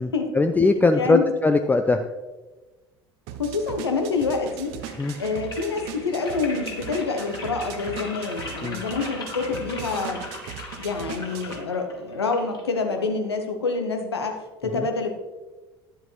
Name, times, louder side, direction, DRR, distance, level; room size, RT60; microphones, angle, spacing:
voice 1, 0.0-2.0 5.0-5.1 8.6-8.8 14.7-14.9, left 3 dB, 15° left, 7 dB, 0.5 m, -21 dB
voice 2, 0.9-1.2 3.4-4.7 5.2-10.2 10.8-14.3 14.6-15.1, left 4 dB, 80° left, 4 dB, 1.0 m, -27 dB
sound 1, 3.3-11.6, right 10 dB, 55° right, 0.7 m, -39 dB
sound 2, 4.3-13.3, left 3 dB, 30° left, 2.5 m, -39 dB
11.0 x 7.5 x 3.1 m, 1.2 s
figure-of-eight pair, 60°, 13 cm